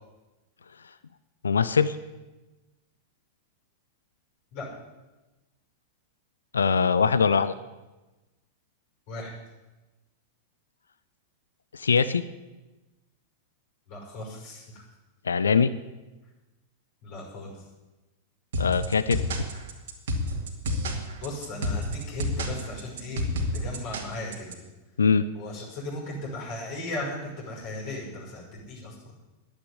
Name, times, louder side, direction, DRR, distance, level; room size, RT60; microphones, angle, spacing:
voice 1, 1.4-2.0 6.5-7.5 11.7-12.2 15.3-15.7 18.6-19.2 25.0-25.2, left 5 dB, 80° left, 15 dB, 0.6 m, -22 dB
voice 2, 13.9-14.8 17.0-17.6 21.2-23.2 23.5-24.6 25.3-28.9, left 2 dB, 55° left, -3 dB, 6.2 m, -36 dB
sound 1, 18.5-24.5, left 1 dB, 70° right, 2.5 m, -29 dB
11.0 x 9.9 x 9.6 m, 1.1 s
figure-of-eight pair, 95°, 0 cm